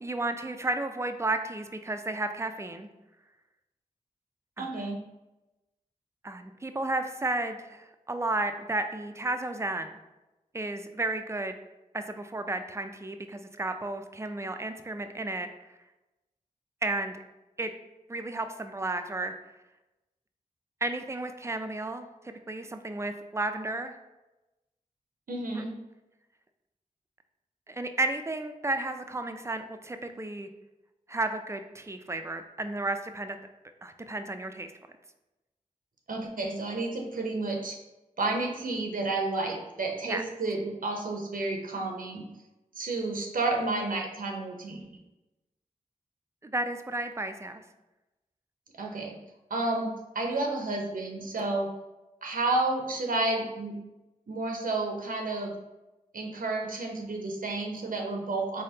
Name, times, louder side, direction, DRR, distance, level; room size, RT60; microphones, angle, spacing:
voice 1, 0.0-2.9 4.6-4.7 6.2-10.0 10.5-11.6 11.9-15.5 16.8-17.2 17.6-17.7 18.1-19.3 20.8-22.1 22.5-24.0 25.5-25.7 27.7-30.5 31.1-33.4 33.8-34.7 40.1-40.2 46.4-47.6, right 2 dB, 20° right, 7 dB, 0.4 m, -32 dB
voice 2, 4.6-5.0 25.3-25.7 36.1-37.8 38.2-42.2 42.8-44.9 48.8-49.2 49.5-51.7 52.2-53.8 54.3-55.5 56.1-58.6, right 2 dB, 70° right, 1 dB, 0.6 m, -31 dB
3.8 x 3.4 x 2.8 m, 1.0 s
cardioid pair, 50°, 15 cm